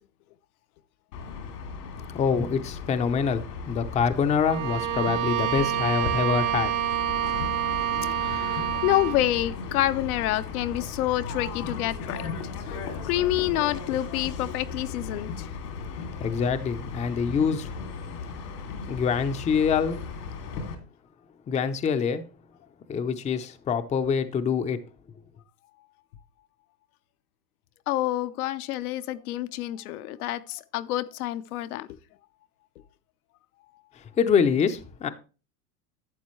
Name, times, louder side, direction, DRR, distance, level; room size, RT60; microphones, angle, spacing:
sound 1, 1.1-20.7, left 5 dB, 85° left, 2.9 m, -36 dB
voice 1, 2.1-6.7 16.2-17.7 18.9-20.0 21.5-22.2 22.9-24.8 34.0-35.1, left 6 dB, 15° left, 0.6 m, -25 dB
Bowed string instrument, 4.4-9.3, right 11 dB, 80° right, 2.9 m, -27 dB
voice 2, 7.9-12.2 12.6-12.8 13.0-15.5 27.9-31.9, left 14 dB, 65° left, 0.8 m, -28 dB
12.0 x 8.0 x 3.1 m
supercardioid pair, 125°, 47 cm